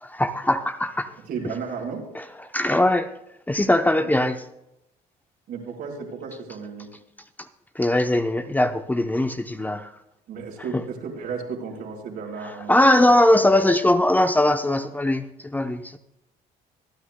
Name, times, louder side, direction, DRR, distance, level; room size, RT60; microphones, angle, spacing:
voice 1, 0.0-1.1 1.4-1.5 2.1-2.2 2.5-3.1 3.5-4.4 7.8-9.9 10.7-10.8 12.7-16.0, left 1 dB, 10° left, 7 dB, 0.7 m, -20 dB
voice 2, 1.3-2.1 4.0-4.1 5.5-6.9 10.3-13.5, right 5 dB, 65° right, 0 dB, 4.2 m, -34 dB
25.5 x 9.7 x 2.2 m, 0.86 s
cardioid pair, 110°, 17 cm